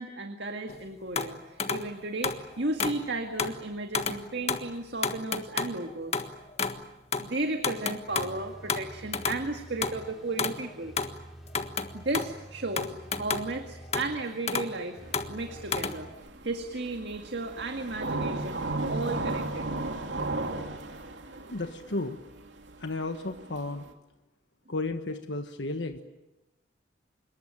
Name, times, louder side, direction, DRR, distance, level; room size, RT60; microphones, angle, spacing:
voice 1, 0.0-6.2 7.2-10.9 11.9-15.0 15.3-16.1 16.4-18.6 18.9-19.7, right 2 dB, 65° right, 5 dB, 2.0 m, -34 dB
sound 1, 0.7-0.8 1.2-1.9 2.2-3.0 3.4-3.6 3.9-4.2 4.5-4.7 5.0-6.8 7.1-7.3 7.6-9.5 9.8-11.2 11.5-12.4 12.8-13.6 13.9-14.8 15.1-16.3, left 5 dB, 35° left, 1.5 m, -31 dB
sound 2, 8.1-16.1, right 1 dB, ahead, 4.9 m, -49 dB
sound 3, 15.0-23.9, right 2 dB, 80° right, 2.8 m, -35 dB
voice 2, 21.5-22.2 22.8-23.8 24.7-26.0, left 2 dB, 80° left, 6 dB, 1.4 m, -33 dB
26.5 x 22.0 x 9.0 m, 1.0 s
head